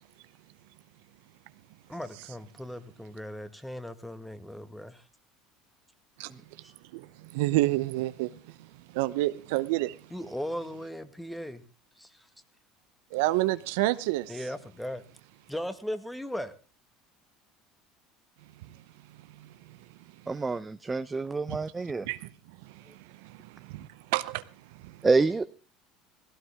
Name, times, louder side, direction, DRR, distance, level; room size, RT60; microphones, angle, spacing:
voice 1, 1.9-5.0 10.1-11.6 12.0-12.3 14.3-15.0 15.5-16.6 22.8-23.0, equal, 5° left, 1.8 m, -37 dB
voice 2, 7.3-8.3 8.9-9.9 13.1-14.3 21.5-21.6 22.1-22.3 23.3-23.4 23.7-23.9 24.1-24.4 24.8-24.9, right 18 dB, 75° right, 0.7 m, -27 dB
voice 3, 20.3-22.1 25.0-25.5, right 3 dB, 20° right, 0.7 m, -27 dB
17.5 x 16.0 x 3.6 m
hypercardioid pair, 75°, 0 cm